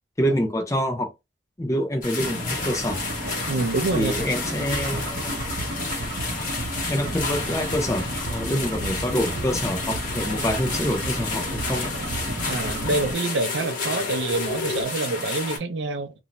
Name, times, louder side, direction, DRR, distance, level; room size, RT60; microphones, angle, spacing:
voice 1, 0.2-1.1 1.6-3.0 3.9-5.3 6.9-8.0 8.3-11.9, equal, 20° left, 0.6 m, -26 dB
sound 1, 2.0-15.6, left 3 dB, 50° left, 1.0 m, -31 dB
sound 2, 2.2-13.1, right 1 dB, 55° right, 0.8 m, -32 dB
voice 2, 3.5-4.1 12.5-16.1, right 3 dB, 80° right, 0.5 m, -26 dB
sound 3, 9.3-14.8, left 4 dB, 75° left, 0.4 m, -39 dB
2.5 x 2.1 x 2.9 m
head